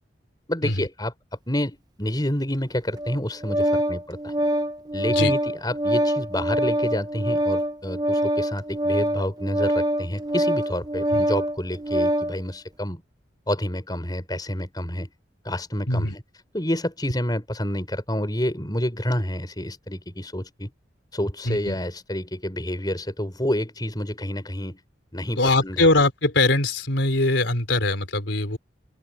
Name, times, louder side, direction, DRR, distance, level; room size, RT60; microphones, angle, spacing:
voice 1, 0.5-1.1 1.5-4.3 4.9-13.0 13.5-15.1 15.4-16.2 16.5-20.7 21.1-24.8 25.1-25.9, left 1 dB, 20° left, 5.6 m, -28 dB
Organ, 2.9-12.4, equal, 20° right, 0.9 m, -24 dB
voice 2, 21.4-21.8 25.4-28.6, left 2 dB, 80° left, 3.9 m, -22 dB
open air
head